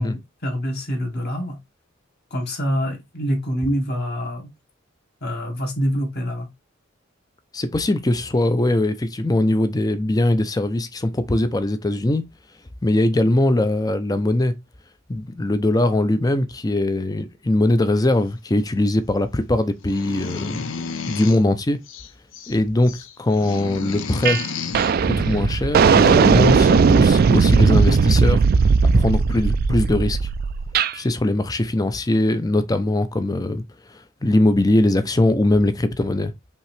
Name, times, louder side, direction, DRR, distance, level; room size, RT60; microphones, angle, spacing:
voice 1, 0.0-1.6 2.3-4.5 5.2-6.5, equal, 50° left, 1.8 m, -25 dB
voice 2, 7.5-12.2 12.8-14.5 15.1-20.6 21.1-21.8 22.5-24.4 25.0-28.4 28.8-30.2 30.9-33.6 33.9-36.3, left 1 dB, 20° left, 0.5 m, -21 dB
sound 1, 19.8-21.5 21.9-22.5 22.9-24.9 26.1-26.2 26.5-26.8, left 5 dB, 70° left, 0.6 m, -32 dB
sound 2, 24.2-24.4 24.7-30.9, right 5 dB, 45° right, 0.3 m, -17 dB
5.4 x 2.9 x 3.3 m
head